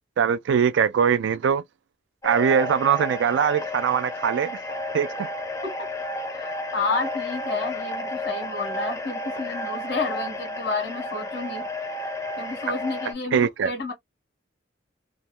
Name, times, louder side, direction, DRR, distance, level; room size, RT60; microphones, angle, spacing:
voice 1, 0.2-1.6 2.2-4.6 4.9-5.3 13.3-13.7, right 7 dB, 80° right, 0.3 m, -22 dB
sound 1, 2.2-13.1, left 1 dB, 20° left, 0.5 m, -32 dB
voice 2, 6.3-11.7 12.4-13.9, left 3 dB, 75° left, 1.3 m, -31 dB
3.0 x 2.2 x 2.2 m
head